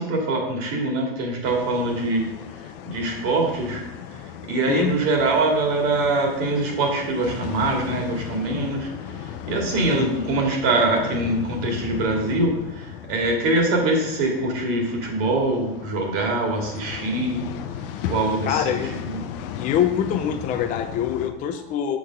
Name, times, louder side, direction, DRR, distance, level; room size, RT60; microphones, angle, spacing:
voice 1, 0.0-2.3 2.9-3.8 4.5-17.4 18.1-18.8 19.1-19.2, right 2 dB, 45° right, 1 dB, 2.2 m, -23 dB
sound 1, 1.4-21.3, left 9 dB, 60° left, 0.8 m, -36 dB
voice 2, 18.5-19.2 19.6-22.0, left 9 dB, 25° left, 6 dB, 0.5 m, -24 dB
7.3 x 4.8 x 5.1 m, 0.91 s
supercardioid pair, 140°, 31 cm